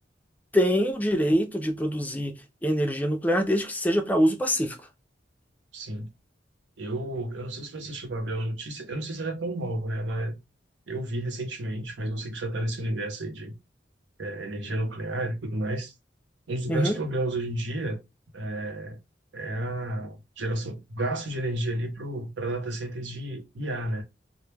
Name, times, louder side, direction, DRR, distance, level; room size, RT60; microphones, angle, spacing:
voice 1, 0.5-2.4 2.6-4.8 16.7-17.0, equal, 10° left, 0.4 m, -24 dB
voice 2, 5.7-6.1 6.8-10.4 10.9-13.5 14.2-15.9 16.5-18.0 18.3-19.0 19.3-24.0, right 1 dB, 90° right, 0.7 m, -31 dB
2.1 x 2.1 x 3.2 m
head